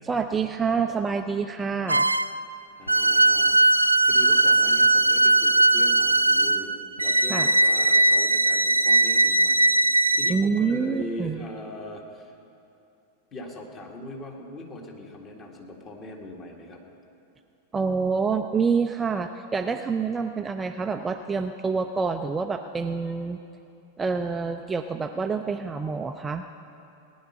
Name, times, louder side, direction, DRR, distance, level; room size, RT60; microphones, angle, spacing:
voice 1, 0.1-2.1 7.3-7.5 10.3-11.5 17.7-23.4 24.0-26.4, right 5 dB, 15° right, 6 dB, 0.5 m, -27 dB
sound 1, 1.9-2.4 2.9-10.4, right 2 dB, 85° right, 0.3 m, -20 dB
voice 2, 2.8-3.6 4.0-12.3 13.3-16.8, left 1 dB, 30° left, 0 dB, 2.1 m, -40 dB
18.0 x 10.5 x 5.7 m, 2.7 s
figure-of-eight pair, 90°, 0 cm